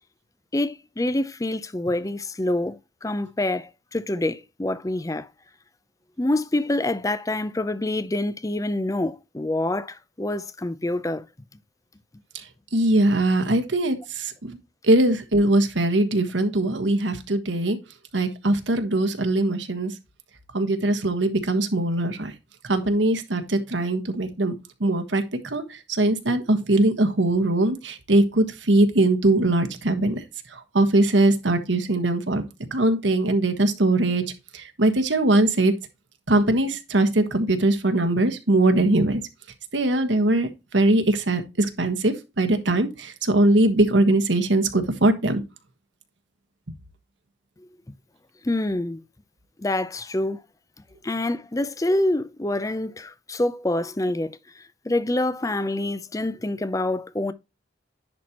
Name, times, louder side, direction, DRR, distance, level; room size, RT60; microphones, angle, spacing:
voice 1, 0.5-5.3 6.2-11.2 48.4-49.0 49.6-50.4 51.0-54.4 54.8-57.3, left 1 dB, 20° left, 0.5 m, -26 dB
voice 2, 12.7-14.6 14.8-17.8 18.1-19.9 20.5-22.3 22.6-25.6 25.9-30.2 30.5-32.4 32.7-34.2 34.5-35.7 36.3-39.2 39.7-45.4, right 2 dB, 75° right, 1.4 m, -21 dB
10.5 x 4.3 x 3.0 m
head